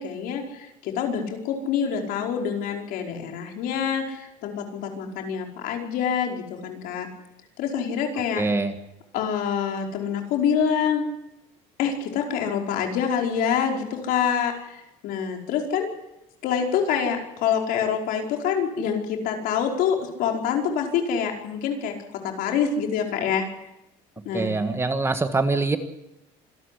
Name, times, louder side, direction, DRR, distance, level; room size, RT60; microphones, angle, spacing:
voice 1, 0.0-7.1 7.6-8.4 9.1-11.0 11.8-15.9 16.4-21.9 22.2-23.5 24.2-24.5, left 7 dB, 70° left, 2 dB, 5.0 m, -26 dB
voice 2, 8.3-8.7 24.3-25.8, right 3 dB, 15° right, 9 dB, 1.7 m, -24 dB
26.0 x 13.5 x 10.0 m, 0.89 s
cardioid pair, 125°, 15 cm